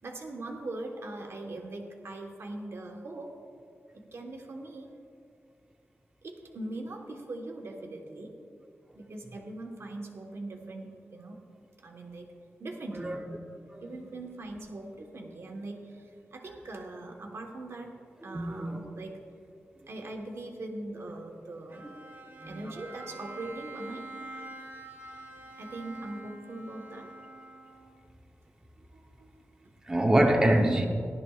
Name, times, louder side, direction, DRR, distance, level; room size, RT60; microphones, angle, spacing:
voice 1, 0.0-3.4 3.9-5.0 6.2-8.3 8.9-11.4 11.8-12.3 12.6-13.2 13.8-17.9 18.2-19.3 19.9-21.8 22.4-24.1 25.6-27.1 28.8-29.7, right 2 dB, 65° right, 1.3 m, -41 dB
voice 2, 18.3-18.8 22.4-22.6 29.9-30.9, right 1 dB, 15° right, 0.9 m, -25 dB
Bowed string instrument, 21.7-28.1, right 2 dB, 45° right, 2.1 m, -46 dB
17.0 x 12.0 x 2.4 m
wide cardioid pair, 130°, 5 cm